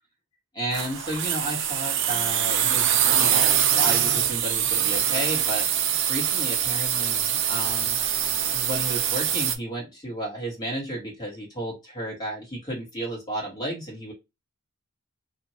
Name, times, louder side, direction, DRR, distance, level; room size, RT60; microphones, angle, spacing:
voice 1, 0.5-5.7 6.1-8.0 8.5-14.1, right 1 dB, 20° left, -4 dB, 1.5 m, -32 dB
sound 1, 0.7-9.6, right 9 dB, 55° right, 0.5 m, -24 dB
2.7 x 2.5 x 2.8 m, 0.23 s
head